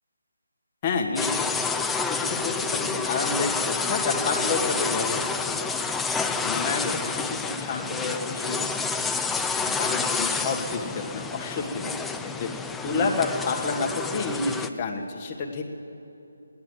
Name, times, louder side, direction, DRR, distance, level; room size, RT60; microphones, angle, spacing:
voice 1, 0.8-5.2 5.6-5.7 6.2-7.0 7.2-8.7 8.9-9.0 9.6-12.5 12.8-15.6, left 4 dB, 25° left, 1 dB, 1.5 m, -29 dB
sound 1, 1.2-14.7, left 4 dB, 5° left, 0.4 m, -29 dB
16.0 x 10.5 x 8.0 m, 2.9 s
figure-of-eight pair, 150°, 0 cm